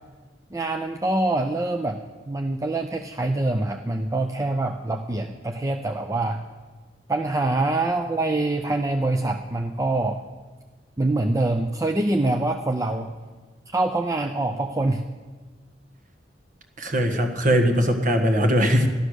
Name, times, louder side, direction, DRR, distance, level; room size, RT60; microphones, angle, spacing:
voice 1, 0.5-2.0 2.3-6.4 7.1-10.2 11.0-13.1 13.7-15.0, right 2 dB, 20° right, 5 dB, 0.5 m, -25 dB
voice 2, 16.8-18.9, equal, 45° right, 6 dB, 1.6 m, -20 dB
13.0 x 12.0 x 6.5 m, 1.3 s
head